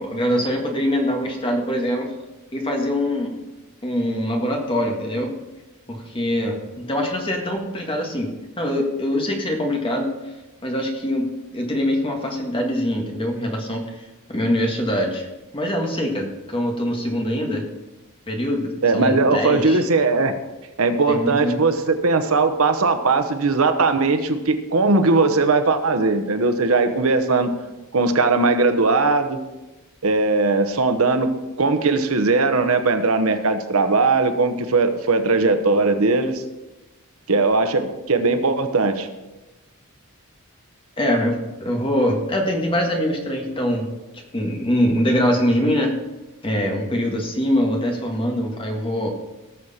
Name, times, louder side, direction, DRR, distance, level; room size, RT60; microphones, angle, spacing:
voice 1, 0.0-2.1 2.5-3.3 3.8-5.3 5.9-8.3 8.6-10.1 10.6-15.3 15.5-17.6 18.3-19.8 21.1-21.6 41.0-43.9 44.3-45.9 46.4-49.1, equal, 25° left, 1 dB, 1.7 m, -23 dB
voice 2, 18.8-20.3 20.8-27.5 27.9-29.4 30.0-31.3 31.6-36.4 37.3-39.1, right 3 dB, 70° right, 8 dB, 1.0 m, -19 dB
18.0 x 6.6 x 4.3 m, 1.1 s
head